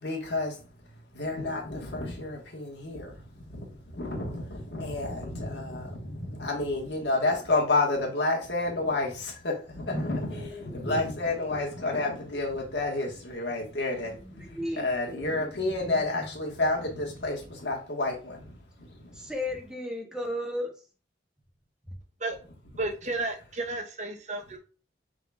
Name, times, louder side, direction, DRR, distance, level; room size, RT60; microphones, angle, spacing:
voice 1, 0.0-19.3 22.7-22.8, left 2 dB, 70° left, 0 dB, 1.4 m, -30 dB
voice 2, 5.6-6.4 9.9-11.1 14.1-15.5 15.9-16.0 19.1-20.7 21.8-22.0, left 1 dB, 5° right, 1 dB, 1.0 m, -36 dB
voice 3, 22.8-24.6, right 2 dB, 40° right, 4 dB, 0.8 m, -32 dB
5.0 x 3.7 x 2.3 m, 0.35 s
head